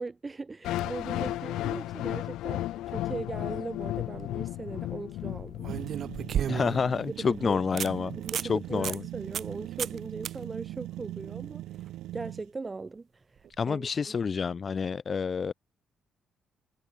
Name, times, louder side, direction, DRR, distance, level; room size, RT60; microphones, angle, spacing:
voice 1, 0.0-5.7 6.6-6.8 7.1-7.6 8.2-13.9, right 3 dB, 25° right, 6.6 m, -39 dB
sound 1, 0.6-6.7, left 15 dB, 90° left, 2.5 m, -34 dB
sound 2, 3.9-4.2 5.6-6.9 7.3-7.4 7.8-7.9 8.2-8.5 8.8-9.0 9.3-9.5 9.8-10.0 10.3-10.4 13.4-13.5, right 9 dB, 60° right, 1.3 m, -32 dB
sound 3, 5.7-12.5, right 15 dB, 90° right, 2.2 m, -40 dB
voice 2, 6.5-8.2 8.5-9.0 13.6-15.5, left 5 dB, 40° left, 1.4 m, -28 dB
cardioid pair, 90°, 0 cm